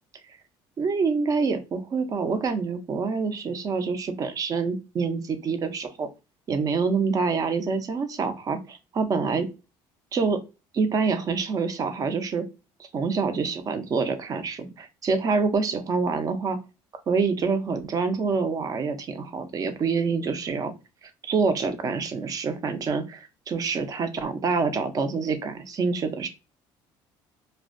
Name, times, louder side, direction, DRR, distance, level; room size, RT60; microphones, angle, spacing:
voice 1, 0.8-6.1 6.5-9.5 10.1-10.4 10.7-12.4 12.9-16.6 17.1-20.7 21.2-26.3, right 4 dB, 35° right, 9 dB, 0.5 m, -26 dB
2.4 x 2.1 x 2.5 m, 0.27 s
cardioid pair, 120°, 10 cm